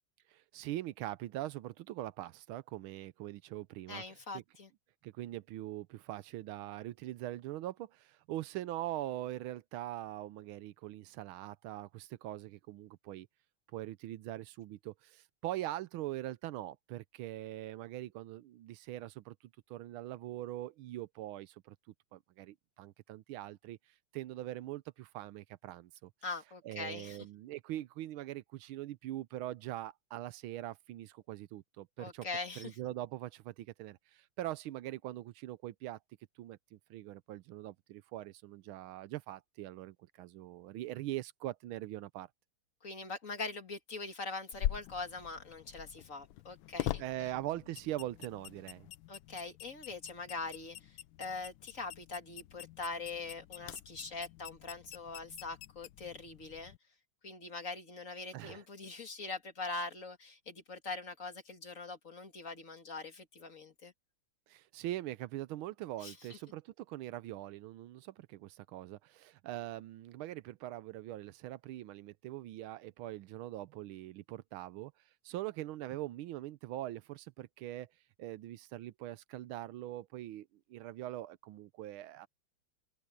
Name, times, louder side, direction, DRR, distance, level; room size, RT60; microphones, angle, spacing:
voice 1, 0.3-4.0 4.3-4.4 5.0-13.3 13.7-19.4 19.7-21.8 22.1-23.8 24.1-26.1 26.6-32.3 32.6-36.0 36.4-42.3 47.0-48.9 58.3-58.6 64.5-74.9 75.2-77.9 78.2-82.3, right 14 dB, 85° right, 1.5 m, -42 dB
voice 2, 3.9-4.7 26.2-27.3 32.0-32.8 42.8-47.3 49.1-56.7 57.2-63.9 66.0-66.4, left 3 dB, 40° left, 2.4 m, -43 dB
sound 1, 44.5-56.8, left 13 dB, 80° left, 1.4 m, -44 dB
open air
omnidirectional pair, 2.3 m